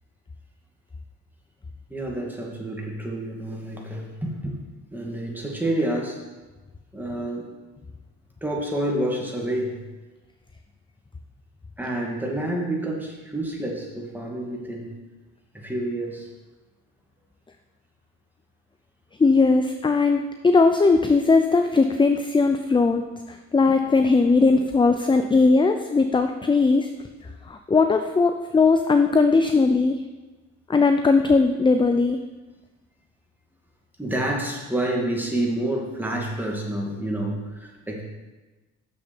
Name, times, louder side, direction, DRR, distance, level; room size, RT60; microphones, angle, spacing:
voice 1, 1.9-4.6 4.9-6.2 6.9-7.5 8.4-9.8 11.8-15.0 15.5-16.3 24.9-25.0 34.0-38.0, right 1 dB, 5° right, -2 dB, 2.3 m, -28 dB
voice 2, 19.2-23.0 23.3-26.9 27.5-30.0 30.7-32.2, left 4 dB, 15° left, 7 dB, 0.5 m, -19 dB
6.7 x 6.6 x 7.0 m, 1.2 s
cardioid pair, 90°, 30 cm